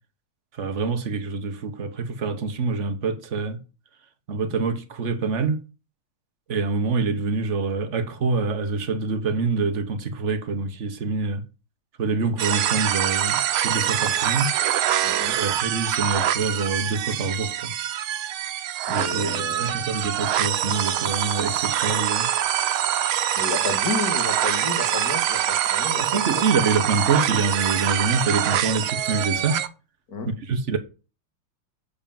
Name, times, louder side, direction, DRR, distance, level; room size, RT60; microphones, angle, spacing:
voice 1, 0.5-3.6 4.3-5.6 6.5-11.4 12.0-14.5 15.3-17.7 18.9-22.3 26.0-29.6 30.3-30.8, right 4 dB, 40° right, 1.3 m, -26 dB
sound 1, 12.4-29.7, right 11 dB, 85° right, 1.6 m, -24 dB
voice 2, 15.0-15.3 18.9-19.8 23.4-26.2 30.1-30.3, left 4 dB, 45° left, 2.2 m, -31 dB
8.1 x 5.1 x 7.2 m
omnidirectional pair, 2.3 m